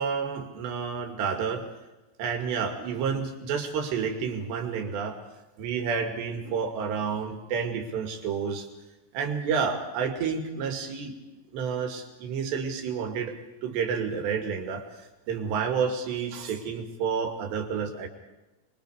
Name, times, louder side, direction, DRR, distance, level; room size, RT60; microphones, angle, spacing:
voice 1, 0.0-1.7 2.2-5.2 5.6-8.7 9.1-11.1 11.5-13.3 13.6-14.9 15.3-18.1, right 6 dB, 80° right, 5 dB, 4.4 m, -30 dB
24.0 x 23.5 x 5.0 m, 1.1 s
omnidirectional pair, 4.8 m